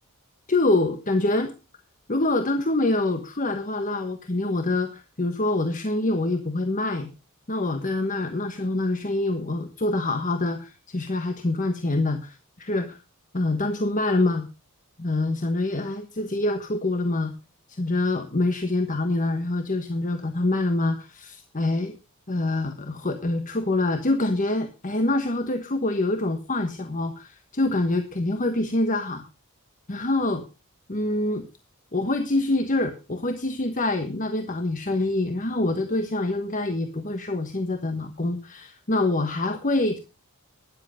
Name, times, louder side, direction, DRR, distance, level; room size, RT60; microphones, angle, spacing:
voice 1, 0.5-1.5 2.1-7.1 7.5-13.0 13.3-14.5 15.0-17.3 17.7-21.9 22.3-29.2 29.9-30.4 30.9-31.5 31.9-40.0, left 2 dB, 35° left, 7 dB, 1.3 m, -25 dB
13.0 x 10.5 x 5.0 m, 0.30 s
head